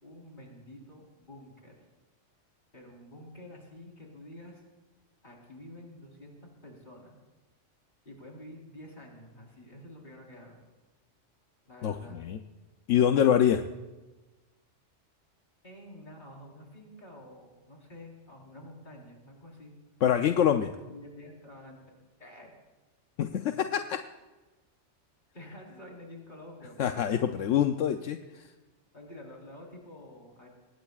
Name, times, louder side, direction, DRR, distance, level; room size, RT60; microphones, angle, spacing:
voice 1, 0.0-1.7 2.7-4.6 5.2-7.2 8.0-10.6 11.7-12.2 15.6-19.7 20.9-21.8 22.2-22.5 25.3-26.9 28.9-30.5, left 1 dB, 40° left, -1 dB, 4.2 m, -49 dB
voice 2, 11.8-12.4 12.9-13.6 20.0-20.7 23.2-24.0 26.8-28.5, left 9 dB, 80° left, 6 dB, 1.0 m, -25 dB
25.0 x 20.0 x 2.4 m, 1.2 s
omnidirectional pair, 1.2 m